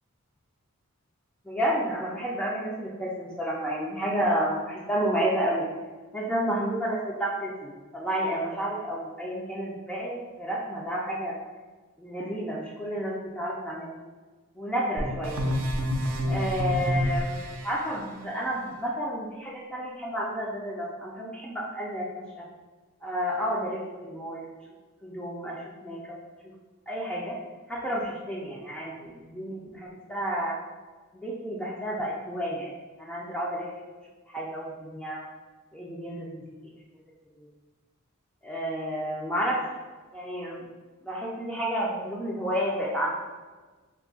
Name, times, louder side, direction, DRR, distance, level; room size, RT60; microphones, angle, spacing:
voice 1, 1.5-5.7 6.1-11.4 12.0-13.9 14.6-15.4 16.3-22.4 23.0-24.4 25.0-26.2 26.9-27.4 27.7-30.6 31.1-32.7 33.0-33.7 34.3-35.3 35.7-36.6 37.4-37.5 38.4-39.6 40.1-40.6 41.0-43.1, equal, 5° left, -5 dB, 0.3 m, -31 dB
sound 1, 15.0-17.7, equal, 70° right, 0.5 m, -28 dB
2.6 x 2.3 x 3.7 m, 1.3 s
head